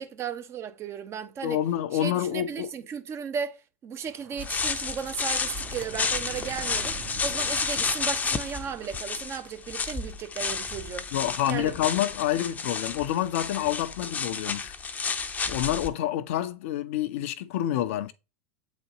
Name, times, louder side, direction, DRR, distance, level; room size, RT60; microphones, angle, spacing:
voice 1, 0.0-1.6 1.9-11.1 11.5-11.7, right 7 dB, 35° right, 0.9 m, -35 dB
voice 2, 1.4-2.7 11.1-14.7 15.5-18.1, left 12 dB, 65° left, 0.6 m, -28 dB
sound 1, 4.0-9.5, right 6 dB, 65° right, 1.9 m, -44 dB
sound 2, 4.4-15.9, left 5 dB, 20° left, 0.7 m, -31 dB
7.9 x 4.1 x 3.0 m
hypercardioid pair, 90°, 8 cm